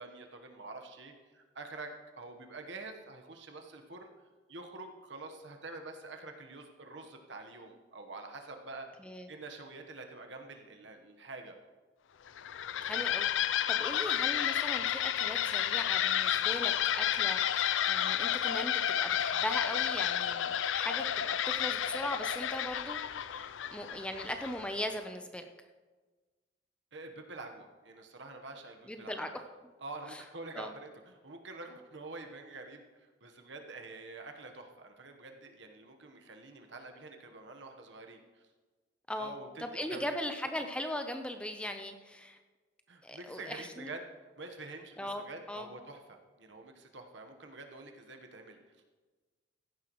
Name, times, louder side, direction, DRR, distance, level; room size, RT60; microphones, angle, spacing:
voice 1, 0.0-4.1 4.5-8.9 9.3-11.5 26.9-29.3 29.8-38.4 39.2-40.2 42.9-44.0 44.4-48.6, right 3 dB, 70° right, 4 dB, 1.2 m, -47 dB
sound 1, 12.3-24.8, left 10 dB, 80° left, 0.4 m, -31 dB
voice 2, 12.8-25.4 28.9-29.3 30.1-30.2 30.5-30.7 39.1-42.4 43.0-43.9 45.0-45.7, left 1 dB, 5° left, 6 dB, 0.6 m, -39 dB
15.5 x 10.5 x 3.1 m, 1.3 s
head